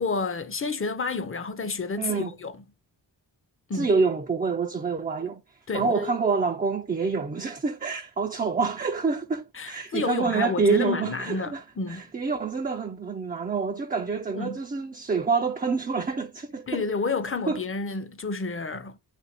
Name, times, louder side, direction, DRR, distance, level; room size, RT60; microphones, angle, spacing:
voice 1, 0.0-2.5 3.7-3.9 5.7-6.1 9.6-12.0 14.3-14.6 16.7-19.0, left 4 dB, 30° left, 0.6 m, -30 dB
voice 2, 2.0-2.3 3.7-5.4 5.7-16.8 17.5-17.6, right 4 dB, 20° right, 0.4 m, -27 dB
2.8 x 2.6 x 4.2 m
cardioid pair, 50°, 43 cm